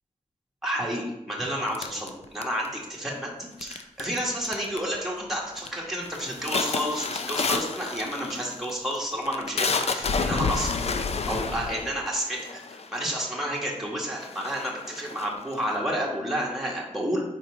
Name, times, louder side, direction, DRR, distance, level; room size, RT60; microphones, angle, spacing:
voice 1, 0.6-11.0 11.3-17.2, equal, ahead, -3 dB, 1.8 m, -30 dB
sound 1, 1.7-2.8 3.6-4.2 4.4-5.0 5.3-5.7 6.1-13.1 13.8-13.9 14.2-15.8, left 4 dB, 55° left, 0.5 m, -30 dB
4.5 x 4.2 x 5.1 m, 0.91 s
cardioid pair, 60°, 13 cm